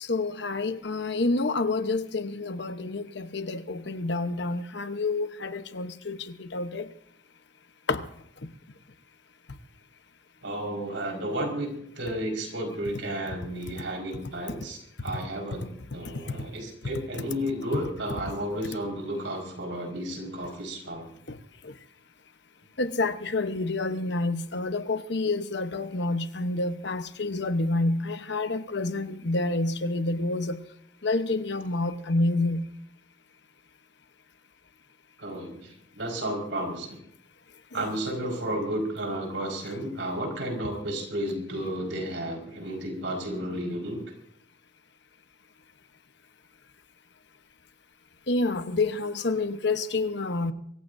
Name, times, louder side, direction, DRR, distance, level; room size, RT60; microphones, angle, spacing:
voice 1, 0.0-6.9 7.9-8.0 16.3-16.4 21.3-21.4 21.6-21.7 22.8-30.6 31.0-32.7 37.7-38.0 48.3-50.5, left 2 dB, 60° left, 1.0 m, -28 dB
voice 2, 10.4-21.1 35.2-37.0 37.7-44.0, right 1 dB, 75° right, 5.0 m, -32 dB
24.5 x 15.0 x 2.7 m
head